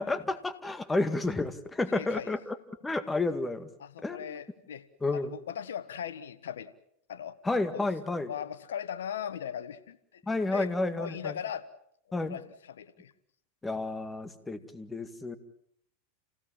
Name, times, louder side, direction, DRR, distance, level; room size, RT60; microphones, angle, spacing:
voice 1, 0.0-2.6 2.8-3.7 4.0-4.4 5.0-5.3 7.4-8.3 10.3-11.3 12.1-12.4 13.6-15.4, left 2 dB, 10° left, 12 dB, 2.0 m, -31 dB
voice 2, 1.9-2.3 3.8-4.8 5.1-6.7 7.1-7.4 7.7-7.8 8.3-10.2 10.5-10.7 11.0-11.6 12.2-13.1, left 9 dB, 85° left, 15 dB, 1.2 m, -38 dB
29.0 x 17.0 x 7.4 m, 0.69 s
hypercardioid pair, 115°, 0 cm